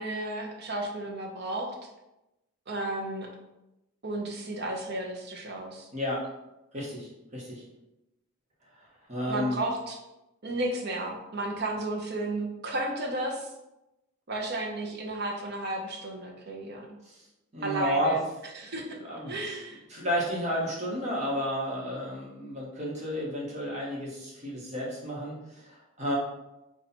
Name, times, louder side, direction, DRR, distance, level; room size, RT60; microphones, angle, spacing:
voice 1, 0.0-1.8 2.7-3.3 4.0-5.9 9.3-10.0 10.4-13.5 14.3-16.9 17.6-18.2 18.5-19.0 19.3-19.8, right 2 dB, 50° right, 1 dB, 0.7 m, -33 dB
voice 2, 5.9-6.2 6.7-7.6 9.1-9.6 17.1-17.2 17.5-18.2 18.9-19.5 19.9-26.2, equal, 30° right, -4 dB, 1.1 m, -32 dB
4.0 x 2.4 x 4.2 m, 0.94 s
head